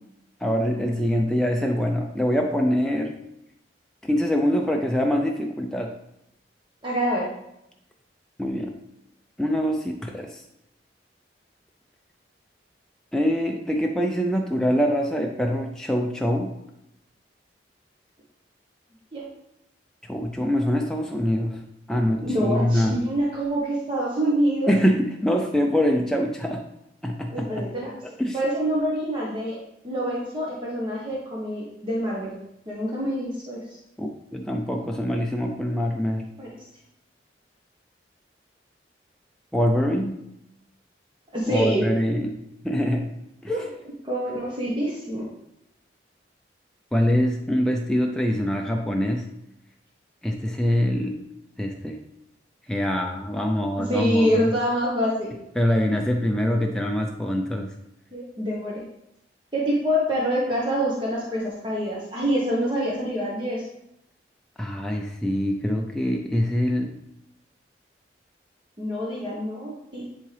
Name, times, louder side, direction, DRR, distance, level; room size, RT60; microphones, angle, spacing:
voice 1, 0.4-3.2 4.0-5.9 8.4-8.8 9.4-10.4 13.1-16.5 20.1-23.0 24.7-26.6 27.0-27.7 28.2-28.4 34.0-36.3 39.5-40.2 41.5-42.4 42.6-43.1 43.4-43.5 46.9-49.3 50.2-51.3 51.6-52.0 52.7-54.4 55.6-57.7 64.6-67.0, equal, 5° left, 1 dB, 0.4 m, -24 dB
voice 2, 6.8-7.3 19.1-19.2 22.2-24.7 27.3-27.9 28.3-29.6 29.8-32.4 32.7-33.6 36.4-36.5 41.3-41.8 43.5-43.7 44.0-45.3 53.9-55.3 58.1-58.8 59.5-63.6 68.8-70.1, equal, 25° right, -5 dB, 1.1 m, -26 dB
10.5 x 3.6 x 3.3 m, 0.83 s
head